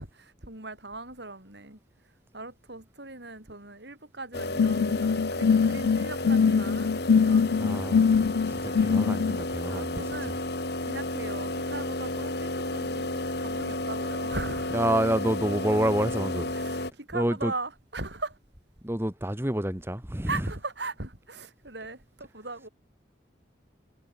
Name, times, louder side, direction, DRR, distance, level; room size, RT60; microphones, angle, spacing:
voice 1, 0.0-1.8 2.3-7.9 9.7-10.4 10.8-14.8 16.5-18.4 20.3-22.7, right 3 dB, 65° right, 5.0 m, -39 dB
sound 1, 4.3-16.9, left 1 dB, 60° left, 4.4 m, -32 dB
sound 2, 4.6-9.4, left 6 dB, 80° left, 0.4 m, -23 dB
voice 2, 7.5-10.4 14.7-16.5 17.1-17.5 18.8-20.5, right 1 dB, 10° right, 1.1 m, -28 dB
head